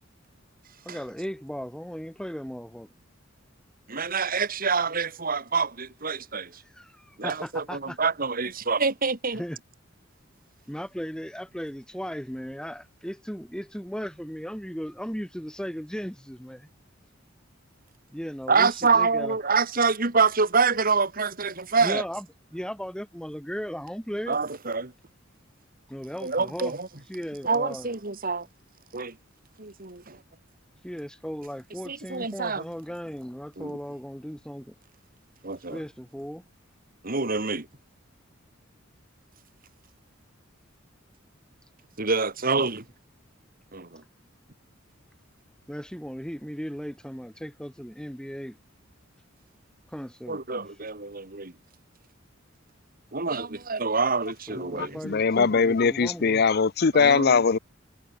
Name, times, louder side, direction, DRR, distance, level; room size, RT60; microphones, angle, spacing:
voice 1, 0.8-2.9 6.7-8.0 9.3-9.6 10.7-16.7 18.1-19.3 21.8-22.2 22.5-24.4 25.9-26.7 27.1-27.9 30.8-34.7 35.7-36.4 45.7-48.6 49.9-50.4 54.5-56.4, equal, 5° left, 8.0 m, -36 dB
voice 2, 3.9-6.6 7.2-9.4 18.5-22.0 24.3-24.9 26.2-26.9 27.4-28.5 28.9-29.2 29.6-30.2 31.9-32.6 33.6-33.8 35.4-35.8 37.0-37.7 42.0-42.9 43.7-44.0 50.3-51.5 53.1-55.0 56.9-57.4, right 4 dB, 45° right, 2.4 m, -26 dB
voice 3, 54.8-57.6, left 5 dB, 50° left, 0.6 m, -21 dB
head